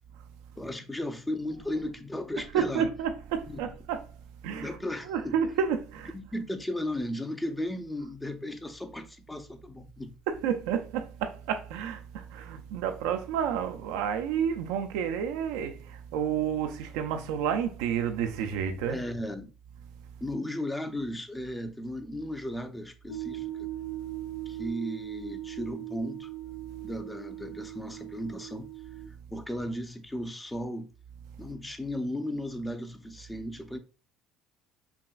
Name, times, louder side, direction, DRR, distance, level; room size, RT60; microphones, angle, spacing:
voice 1, 0.6-2.9 3.5-3.6 4.5-5.4 6.1-10.2 18.9-19.5 20.2-23.7 24.5-26.3 26.8-28.7 29.3-30.9 31.4-33.8, left 1 dB, 15° left, 0.7 m, -35 dB
voice 2, 2.4-4.1 4.4-4.8 5.0-6.1 10.3-19.0, right 8 dB, 80° right, 0.5 m, -30 dB
sound 1, 23.1-29.1, right 14 dB, 75° left, 0.6 m, -39 dB
5.8 x 2.2 x 2.4 m
hypercardioid pair, 70°, 0 cm